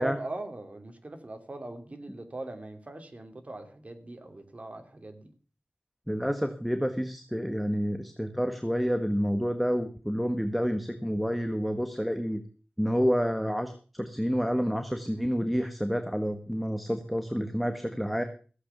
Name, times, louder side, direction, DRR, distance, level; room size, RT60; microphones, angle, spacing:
voice 1, 0.0-5.3, right 2 dB, 45° right, 6 dB, 2.9 m, -40 dB
voice 2, 6.1-12.4 12.8-13.7 14.0-18.2, equal, ahead, 7 dB, 1.5 m, -29 dB
15.0 x 8.4 x 6.8 m, 0.39 s
wide cardioid pair, 65°, 3 cm